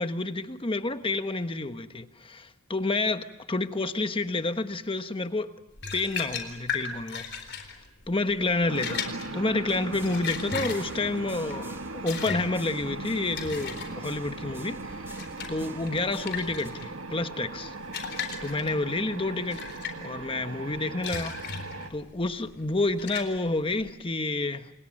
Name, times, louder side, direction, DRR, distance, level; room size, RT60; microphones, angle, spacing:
voice 1, 0.0-5.5 5.9-7.3 7.5-7.7 8.1-15.0 15.5-17.7 18.4-19.6 20.0-21.4 21.9-24.7, left 2 dB, 25° left, 1.2 m, -29 dB
sound 1, 5.7-23.9, left 6 dB, 50° left, 4.0 m, -38 dB
sound 2, 8.7-21.9, right 3 dB, 60° right, 1.5 m, -38 dB
sound 3, 9.7-16.7, right 2 dB, 10° right, 2.7 m, -51 dB
29.5 x 28.0 x 6.4 m
head